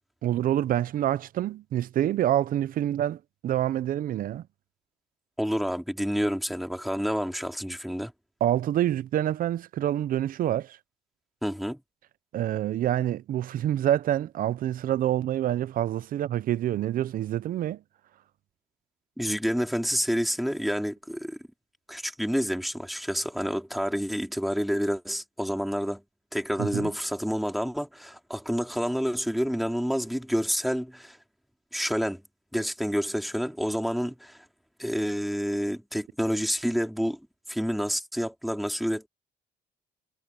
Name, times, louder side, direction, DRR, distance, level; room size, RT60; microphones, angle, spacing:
voice 1, 0.2-4.5 8.4-10.8 12.3-17.8 26.6-26.9, right 12 dB, 55° right, 0.7 m, -27 dB
voice 2, 5.4-8.1 11.4-11.8 19.2-21.4 21.9-26.0 26.3-31.2 31.7-32.2 32.5-34.4 34.8-37.2 37.5-39.1, equal, ahead, 3.1 m, -28 dB
cardioid pair, 110°, 17 cm